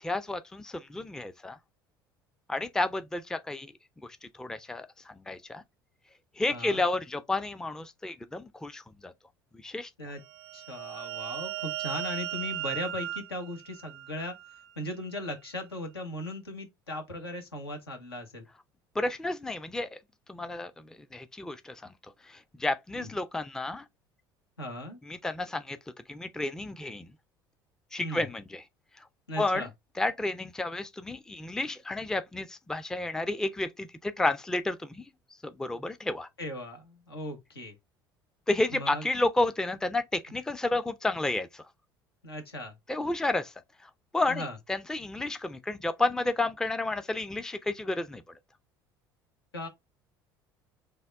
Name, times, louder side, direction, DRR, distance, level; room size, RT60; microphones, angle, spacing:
voice 1, 0.0-1.6 2.5-3.7 4.4-5.6 6.4-9.1 9.6-9.9 19.0-20.0 20.3-20.7 21.1-21.9 22.3-23.8 25.1-25.8 26.1-27.1 27.9-28.6 29.4-29.7 30.0-35.1 35.4-36.3 38.5-41.6 42.9-43.5 44.1-48.2, left 2 dB, 5° left, 0.3 m, -31 dB
voice 2, 6.5-6.8 10.0-10.2 10.5-14.4 14.8-18.5 24.6-25.0 28.0-28.3 29.3-29.7 36.4-37.8 38.7-39.0 42.2-42.7 44.3-44.6 49.5-49.7, left 1 dB, 85° left, 0.8 m, -38 dB
sound 1, 10.2-14.7, right 13 dB, 65° right, 0.4 m, -37 dB
3.4 x 2.2 x 3.2 m
figure-of-eight pair, 65°, 12 cm